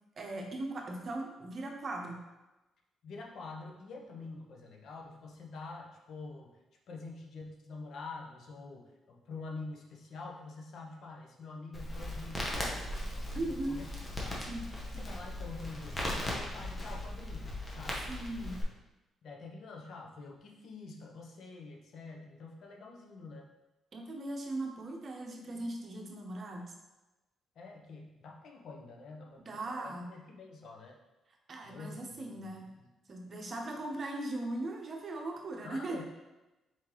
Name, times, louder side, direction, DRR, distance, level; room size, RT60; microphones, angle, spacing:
voice 1, 0.2-2.2 13.3-13.8 14.4-14.6 14.9-15.1 18.1-18.5 23.9-26.7 29.4-30.1 31.5-32.6 33.1-36.0, right 2 dB, 45° right, 1 dB, 0.8 m, -39 dB
voice 2, 3.0-6.6 6.9-13.9 14.2-14.4 15.0-18.7 19.2-23.5 27.6-31.0 31.6-32.9 35.6-36.0, left 3 dB, 65° left, 0 dB, 0.8 m, -47 dB
Crackle, 11.7-18.6, left 1 dB, 25° left, 1.1 m, -38 dB
4.4 x 3.7 x 3.0 m, 1.0 s
cardioid pair, 90°, 0 cm